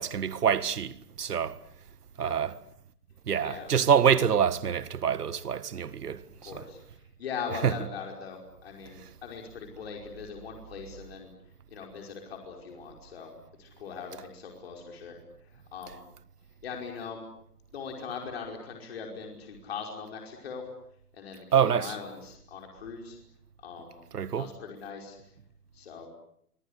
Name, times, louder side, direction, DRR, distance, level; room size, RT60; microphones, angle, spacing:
voice 1, 0.0-1.6 2.2-2.6 3.3-6.6 7.6-7.7 21.5-22.0 24.1-24.5, right 8 dB, 85° right, 1.8 m, -26 dB
voice 2, 3.4-3.7 6.4-6.8 7.2-11.3 11.7-13.3 13.6-15.2 15.5-16.0 16.6-17.3 17.7-20.6 21.1-23.2 23.6-24.0 24.3-25.2 25.7-26.1, left 6 dB, 40° left, 5.3 m, -40 dB
27.0 x 25.5 x 8.2 m
hypercardioid pair, 175°, 46 cm